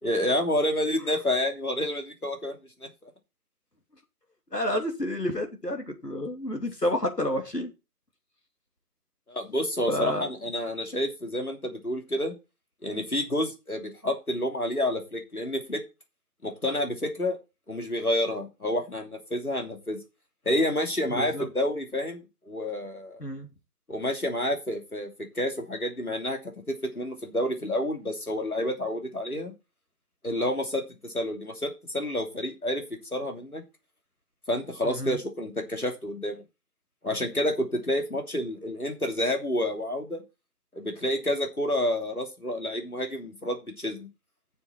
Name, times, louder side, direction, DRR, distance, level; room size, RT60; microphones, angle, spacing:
voice 1, 0.0-3.1 9.3-12.3 12.8-15.8 16.4-17.4 17.7-20.0 20.4-23.2 23.9-26.4 26.7-29.5 30.2-32.8 33.1-33.6 34.5-36.4 37.0-40.2 40.7-44.1, left 1 dB, 65° left, 3 dB, 3.1 m, -29 dB
voice 2, 4.5-7.7 9.9-10.3 21.1-21.5 23.2-23.5 34.8-35.2, left 1 dB, 80° left, 4 dB, 3.0 m, -30 dB
12.0 x 7.2 x 4.5 m, 0.27 s
figure-of-eight pair, 175°, 47 cm